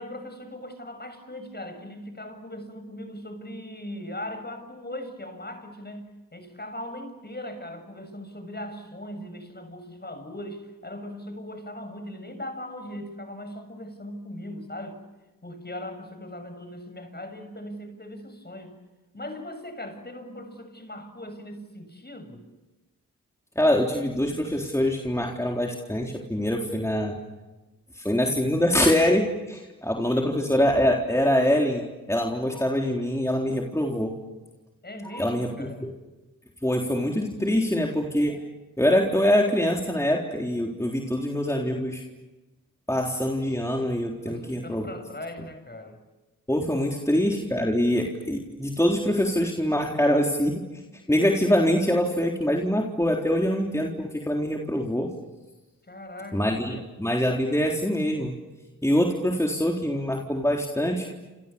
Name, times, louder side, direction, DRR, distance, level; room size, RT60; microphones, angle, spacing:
voice 1, 0.0-15.0 15.4-18.8 19.1-22.5 30.1-30.4 34.8-35.9 44.2-46.0 47.0-47.1 55.9-56.8, left 1 dB, 30° left, 7.0 m, -39 dB
voice 2, 23.6-27.2 27.9-34.1 35.1-35.5 35.8-35.9 36.6-38.4 38.8-42.0 42.9-44.9 46.5-50.6 51.1-55.1 56.3-58.3 58.8-61.1, equal, 10° left, 3.9 m, -24 dB
29.5 x 28.0 x 7.1 m
cardioid pair, 55°, 35 cm